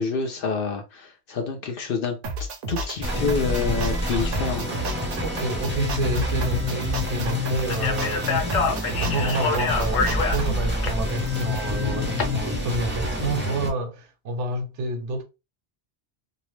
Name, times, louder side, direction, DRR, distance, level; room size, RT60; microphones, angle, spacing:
voice 1, 0.0-4.7, left 5 dB, 60° left, 0.7 m, -28 dB
sound 1, 2.2-10.5, right 2 dB, 60° right, 0.7 m, -33 dB
sound 2, 3.0-13.7, left 1 dB, 15° right, 0.4 m, -27 dB
voice 2, 5.2-8.6 9.0-15.2, right 2 dB, 85° right, 1.0 m, -29 dB
Speech, 7.7-12.2, left 5 dB, 80° left, 1.0 m, -27 dB
2.8 x 2.0 x 3.0 m
omnidirectional pair, 1.2 m